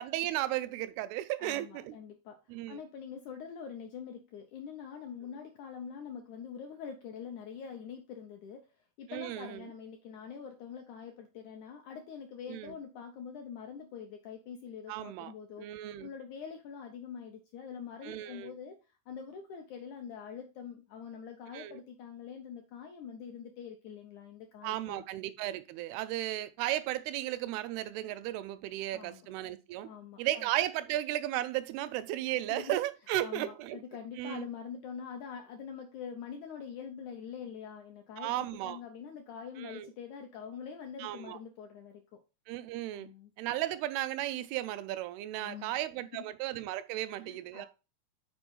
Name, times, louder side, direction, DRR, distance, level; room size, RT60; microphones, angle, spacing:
voice 1, 0.0-2.0 2.5-2.8 9.1-9.7 12.5-12.8 14.9-16.1 18.0-18.6 21.5-21.8 24.6-29.9 30.2-33.8 34.2-34.5 38.2-38.8 39.6-39.9 41.0-41.4 42.5-43.1 43.4-47.7, right 14 dB, 90° right, 2.6 m, -35 dB
voice 2, 1.4-8.6 9.0-25.0 28.9-29.3 29.8-30.5 32.5-32.8 33.2-42.2 42.9-43.3 45.3-45.8 46.1-46.2 47.2-47.7, left 7 dB, 80° left, 1.7 m, -45 dB
6.1 x 4.6 x 5.3 m
omnidirectional pair, 4.4 m